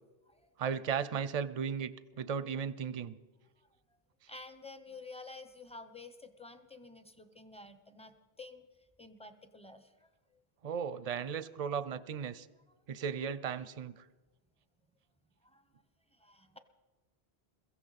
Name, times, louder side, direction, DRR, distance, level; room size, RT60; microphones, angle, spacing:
voice 1, 0.6-3.2 10.6-12.5 12.9-14.0, right 7 dB, 45° right, 15 dB, 0.5 m, -36 dB
voice 2, 4.3-8.7 9.0-10.4 15.4-15.7 16.1-16.6, left 3 dB, 5° left, 9 dB, 0.7 m, -51 dB
22.5 x 15.0 x 4.1 m, 1.2 s
omnidirectional pair, 1.1 m